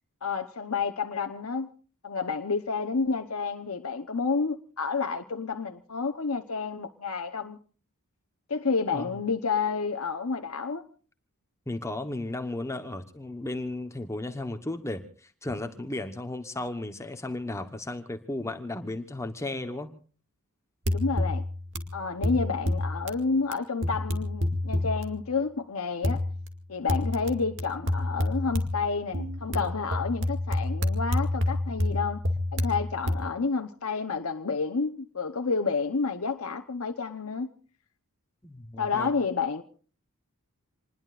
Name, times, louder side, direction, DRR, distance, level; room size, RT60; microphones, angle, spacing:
voice 1, 0.2-1.7 2.0-7.6 8.5-10.9 20.9-21.4 21.9-26.2 26.7-32.2 32.5-37.5 38.8-39.6, left 4 dB, 70° left, 1.0 m, -30 dB
voice 2, 11.7-19.9 38.4-39.1, left 2 dB, 15° left, 1.1 m, -35 dB
sound 1, 20.9-23.2 23.5-23.6 23.8-25.3 26.0-26.6 26.9-33.2, left 1 dB, 60° right, 2.3 m, -29 dB
27.5 x 20.5 x 2.5 m
head